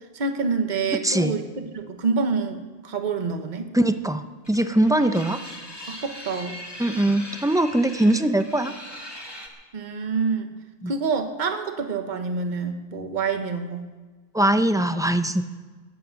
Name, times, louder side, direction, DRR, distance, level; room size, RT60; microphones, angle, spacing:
voice 1, 0.1-1.4 1.7-3.7 5.9-6.6 9.7-10.6 10.9-13.9, right 4 dB, 50° right, 7 dB, 1.2 m, -27 dB
voice 2, 1.0-1.4 3.7-4.2 4.5-5.4 6.8-8.7 10.8-10.9 14.3-15.4, right 1 dB, 5° right, 9 dB, 0.5 m, -21 dB
sound 1, 4.4-9.5, left 1 dB, 25° left, 1.9 m, -40 dB
21.5 x 8.8 x 6.4 m, 1.3 s
omnidirectional pair, 1.0 m